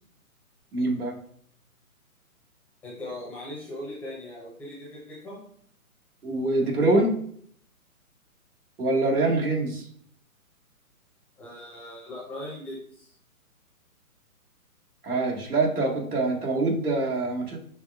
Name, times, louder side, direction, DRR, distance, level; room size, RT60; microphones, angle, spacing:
voice 1, 0.7-1.1 6.2-7.1 8.8-9.9 15.0-17.6, right 2 dB, 80° right, -2 dB, 1.9 m, -24 dB
voice 2, 2.8-5.4 11.4-13.1, left 1 dB, 5° left, -7 dB, 0.6 m, -39 dB
6.0 x 3.5 x 2.4 m, 0.62 s
figure-of-eight pair, 135°, 44 cm